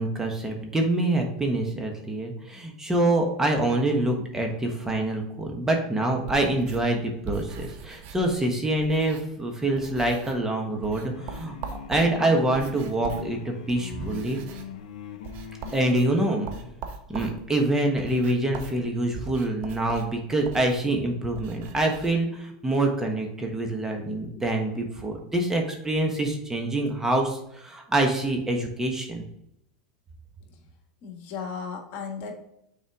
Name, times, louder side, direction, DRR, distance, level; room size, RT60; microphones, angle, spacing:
voice 1, 0.0-11.6 11.9-14.4 15.7-16.5 17.1-29.2, right 1 dB, 10° right, 2 dB, 1.3 m, -26 dB
sound 1, 6.2-9.5 9.7-10.5 10.8-22.1, right 6 dB, 50° right, 1.0 m, -42 dB
sound 2, 10.9-16.7, left 6 dB, 80° left, 0.6 m, -41 dB
voice 2, 31.0-32.3, left 5 dB, 50° left, 3 dB, 1.5 m, -36 dB
6.5 x 4.3 x 3.6 m, 0.78 s
hypercardioid pair, 105°, 4 cm